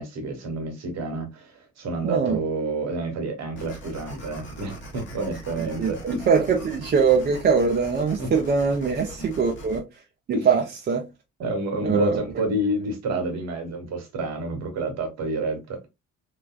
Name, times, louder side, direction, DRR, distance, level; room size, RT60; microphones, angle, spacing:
voice 1, 0.0-6.2 8.2-8.3 10.3-10.5 11.4-15.9, right 2 dB, 45° right, 1.0 m, -29 dB
voice 2, 2.0-2.4 5.8-9.8 10.3-11.1 11.8-12.2, right 5 dB, 25° right, 0.5 m, -22 dB
sound 1, 3.5-9.8, right 1 dB, 30° left, 1.0 m, -41 dB
3.2 x 2.3 x 2.3 m
figure-of-eight pair, 50°, 38 cm